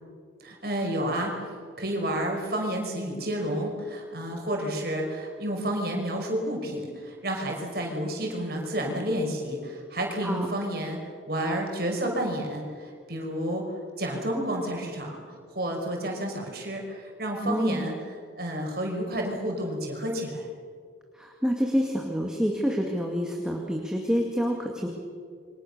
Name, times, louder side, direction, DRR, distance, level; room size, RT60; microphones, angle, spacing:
voice 1, 0.4-1.5 1.8-11.0 11.3-13.6 14.0-17.9 18.4-20.5, right 1 dB, 50° right, 1 dB, 5.5 m, -30 dB
voice 2, 17.4-17.8 21.1-24.9, equal, 5° right, 0 dB, 2.2 m, -27 dB
28.5 x 24.0 x 6.8 m, 2.1 s
head